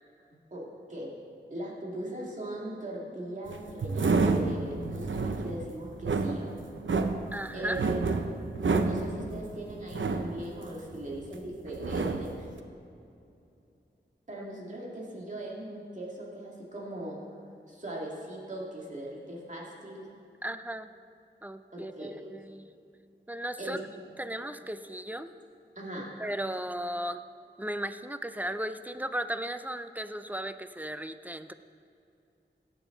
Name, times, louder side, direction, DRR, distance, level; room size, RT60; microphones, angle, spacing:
voice 1, 0.5-1.1 1.5-6.5 7.5-8.1 8.6-12.5 14.3-17.2 17.7-20.1 21.7-22.3 23.6-23.8 25.8-26.1, right 1 dB, 40° right, -3 dB, 2.3 m, -39 dB
sound 1, 3.5-11.3 11.7-12.5, right 3 dB, 85° right, 0.6 m, -29 dB
voice 2, 7.3-7.8 14.4-14.5 20.4-20.9 21.4-22.7 23.3-23.8 24.2-25.3 26.2-27.2 27.6-31.5, right 1 dB, 10° right, 11 dB, 0.4 m, -36 dB
17.5 x 6.9 x 3.9 m, 2.6 s
wide cardioid pair, 75°, 19 cm